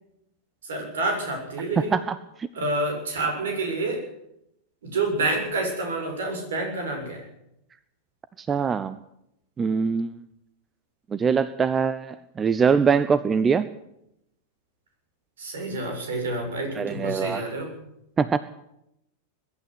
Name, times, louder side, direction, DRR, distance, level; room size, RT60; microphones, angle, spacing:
voice 1, 0.6-2.0 2.5-4.0 4.8-7.3 15.4-17.8, right 2 dB, 65° right, 4 dB, 7.2 m, -28 dB
voice 2, 1.9-2.5 8.4-9.0 9.6-10.2 11.1-13.7 16.8-17.4 18.2-18.4, right 6 dB, 20° right, 15 dB, 0.8 m, -23 dB
22.0 x 12.0 x 9.9 m, 0.80 s
figure-of-eight pair, 90°, 0 cm